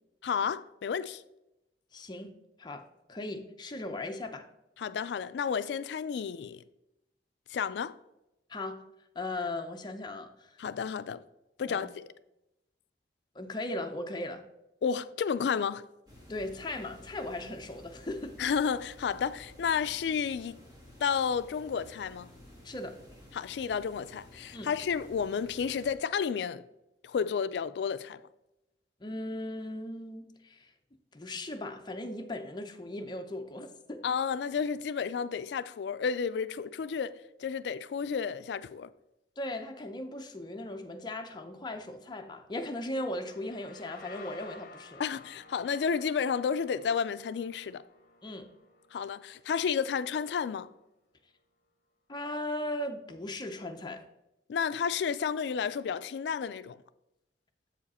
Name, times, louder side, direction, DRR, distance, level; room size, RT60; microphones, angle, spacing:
voice 1, 0.2-1.2 4.8-6.6 7.5-7.9 10.6-11.2 11.6-12.1 14.8-15.8 18.4-20.6 21.0-22.3 23.3-26.6 27.0-28.2 34.0-38.9 45.0-47.8 48.9-50.7 54.5-56.8, left 6 dB, 70° left, 0.3 m, -31 dB
voice 2, 1.9-2.3 2.6-4.5 8.5-8.8 9.2-10.6 11.7-11.9 13.3-14.4 16.3-18.4 22.6-23.0 24.5-24.7 29.0-30.7 31.1-34.0 39.4-45.0 48.2-48.5 52.1-54.0, left 1 dB, 25° left, 0.6 m, -38 dB
sound 1, 16.1-25.9, left 1 dB, 25° right, 1.5 m, -53 dB
sound 2, 43.2-50.7, left 4 dB, 55° left, 0.9 m, -54 dB
7.5 x 4.9 x 4.2 m
head